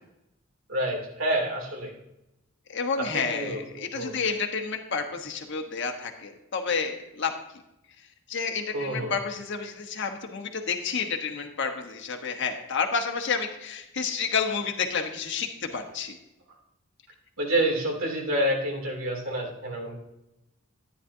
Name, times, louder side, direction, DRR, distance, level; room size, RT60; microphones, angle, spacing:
voice 1, 0.7-1.9 3.0-4.2 8.7-9.1 17.4-19.9, right 1 dB, 75° right, -1 dB, 2.9 m, -28 dB
voice 2, 2.7-7.3 8.3-16.2, left 5 dB, 60° left, 4 dB, 1.2 m, -30 dB
13.0 x 10.0 x 2.8 m, 0.88 s
head